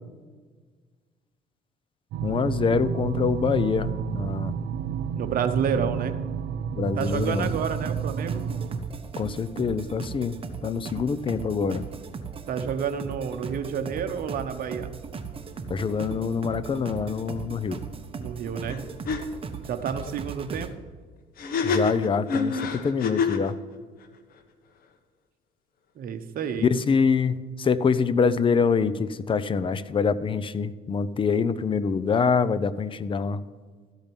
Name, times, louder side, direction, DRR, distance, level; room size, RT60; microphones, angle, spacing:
sound 1, 2.1-8.8, right 7 dB, 80° right, 0.7 m, -30 dB
voice 1, 2.2-4.5 6.8-7.5 9.2-10.4 10.6-11.8 15.7-17.8 21.6-23.6 26.6-33.4, left 5 dB, 30° left, 14 dB, 0.6 m, -25 dB
voice 2, 5.2-6.2 6.9-8.5 12.5-14.9 18.2-18.8 19.7-20.7 26.0-26.7, right 7 dB, 60° right, 8 dB, 1.0 m, -29 dB
sound 2, 7.0-20.7, right 5 dB, 35° right, 1.1 m, -38 dB
sound 3, 18.7-18.8 19.1-19.2 21.4-23.5, left 5 dB, 60° left, 1.2 m, -26 dB
13.5 x 5.1 x 9.1 m, 1.5 s
cardioid pair, 110°, 17 cm